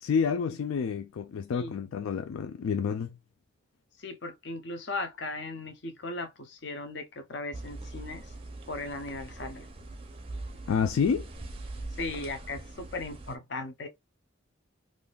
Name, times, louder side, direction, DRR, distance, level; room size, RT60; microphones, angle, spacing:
voice 1, 0.0-3.2 10.7-11.3, left 6 dB, 85° left, 0.3 m, -29 dB
voice 2, 1.5-2.0 4.0-8.3 8.7-9.7 12.0-13.9, left 2 dB, 55° left, 0.6 m, -37 dB
sound 1, 7.5-13.4, right 2 dB, 25° right, 0.5 m, -42 dB
3.6 x 2.5 x 2.3 m
head